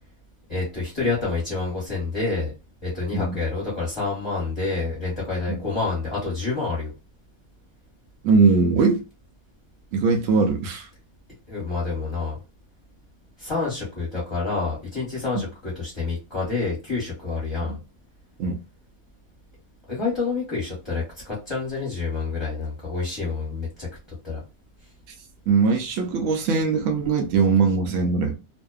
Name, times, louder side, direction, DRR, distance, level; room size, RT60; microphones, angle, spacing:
voice 1, 0.5-2.5 2.8-6.9 11.5-12.4 13.4-17.8 19.9-23.9 24.2-24.4, left 4 dB, 25° left, 0.9 m, -28 dB
voice 2, 8.2-9.0 9.9-10.9 17.6-17.8 18.4-18.6 25.5-28.4, right 4 dB, 70° right, 0.9 m, -21 dB
2.6 x 2.1 x 2.2 m
omnidirectional pair, 1.5 m